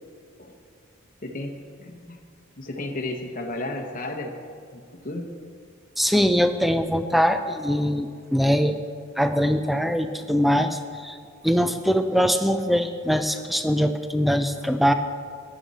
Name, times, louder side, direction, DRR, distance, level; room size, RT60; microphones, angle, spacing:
voice 1, 1.2-2.2 2.6-4.3 4.7-5.3, left 2 dB, 35° left, 2 dB, 1.0 m, -33 dB
voice 2, 6.0-8.8 9.2-11.2 11.4-14.9, equal, ahead, 8 dB, 0.4 m, -22 dB
15.0 x 10.5 x 4.1 m, 2.2 s
head